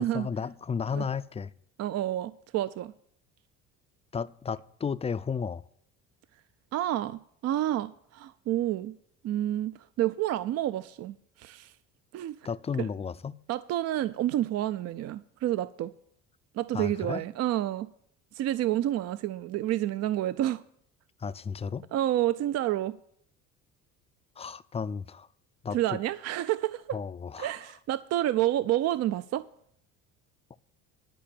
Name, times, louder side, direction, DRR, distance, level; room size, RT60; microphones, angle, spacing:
voice 1, 0.0-1.5 4.1-5.6 12.4-13.4 16.7-17.2 21.2-21.9 24.4-25.3 25.6-26.0 26.9-27.5, left 6 dB, 20° left, 0.4 m, -33 dB
voice 2, 1.8-2.9 6.7-8.9 9.2-11.7 12.1-12.4 12.8-12.9 13.5-15.9 16.5-17.9 18.3-20.6 21.9-22.9 25.7-27.0 27.4-29.5, right 13 dB, 50° right, 0.5 m, -29 dB
11.5 x 5.1 x 8.5 m
supercardioid pair, 85°, 32 cm